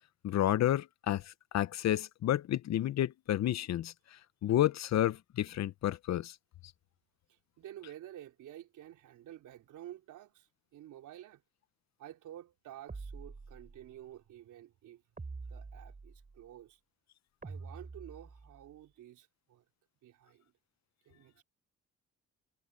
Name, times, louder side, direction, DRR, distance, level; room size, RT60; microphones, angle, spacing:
voice 1, 0.2-3.9 4.4-6.3, left 12 dB, 60° left, 0.8 m, -30 dB
voice 2, 7.3-11.4 12.0-15.0 15.5-16.8 17.4-19.6 20.0-20.5 21.1-21.4, right 12 dB, 80° right, 3.9 m, -51 dB
sound 1, 12.9-14.0 15.2-16.4 17.4-18.7, right 4 dB, 25° right, 5.4 m, -46 dB
cardioid pair, 90°, 30 cm